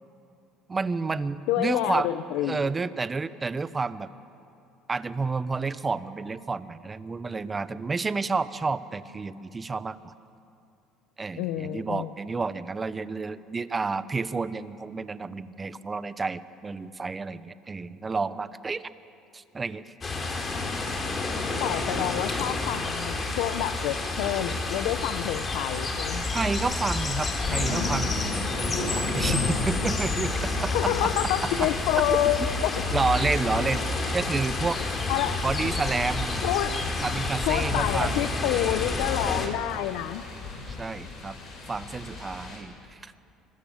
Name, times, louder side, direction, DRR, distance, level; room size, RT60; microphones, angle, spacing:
voice 1, 0.7-2.1 2.4-4.1 4.9-10.1 11.2-18.8 19.3-19.8 20.3-20.4 26.3-31.1 31.6-31.7 32.1-32.5 32.9-33.8 34.1-34.8 35.4-36.4 37.0-38.3 40.7-41.4 41.7-42.7 43.0-43.1, right 4 dB, 25° right, 14 dB, 0.9 m, -30 dB
voice 2, 1.5-2.7 11.4-12.1 21.6-26.3 30.7-32.8 35.1-35.4 36.4-36.8 37.5-40.2, left 13 dB, 80° left, 11 dB, 0.7 m, -28 dB
sound 1, 20.0-39.5, left 3 dB, 30° left, 3.7 m, -29 dB
sound 2, 27.4-42.6, left 3 dB, 55° left, 7.3 m, -36 dB
26.0 x 21.0 x 7.4 m, 2.6 s
supercardioid pair, 95°, 0 cm